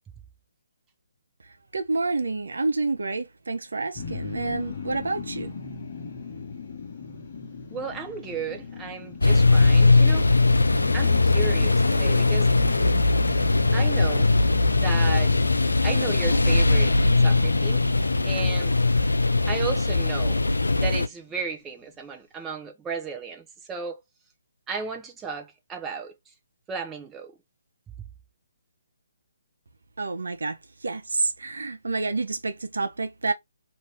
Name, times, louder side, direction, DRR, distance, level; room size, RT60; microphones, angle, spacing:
voice 1, 1.7-5.5 30.0-30.6 30.8-33.3, right 3 dB, 70° right, 0.6 m, -28 dB
sound 1, 3.9-21.1, left 4 dB, 45° left, 1.0 m, -36 dB
voice 2, 7.7-10.2 10.9-12.5 13.7-14.3 14.8-15.3 15.8-16.9 17.2-17.8 18.2-18.7 19.5-20.4 20.8-23.4 23.7-24.0 24.7-26.1 26.7-27.3, right 5 dB, 10° right, 0.7 m, -34 dB
sound 2, 9.2-21.1, left 3 dB, 80° left, 0.4 m, -20 dB
2.6 x 2.6 x 3.3 m
figure-of-eight pair, 140°, 0 cm